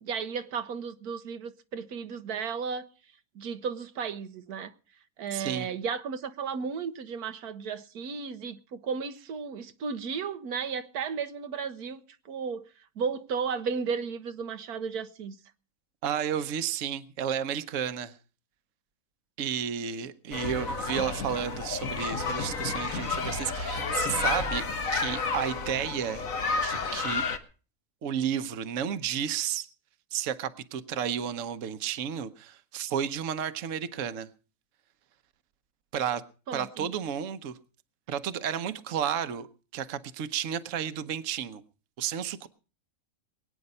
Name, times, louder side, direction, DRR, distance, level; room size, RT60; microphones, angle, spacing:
voice 1, 0.0-2.9 3.3-4.7 5.2-12.6 13.0-15.4 36.5-36.9, right 6 dB, 90° right, 1.5 m, -34 dB
voice 2, 5.3-5.7 16.0-18.2 19.4-24.6 24.9-26.2 26.6-27.2 28.0-29.7 30.1-34.3 35.9-36.2 36.5-37.6 38.1-39.5 39.7-41.6 42.0-42.5, right 9 dB, 60° right, 1.2 m, -32 dB
sound 1, 20.3-27.4, left 4 dB, 60° left, 1.8 m, -31 dB
22.0 x 9.2 x 5.4 m
omnidirectional pair, 1.6 m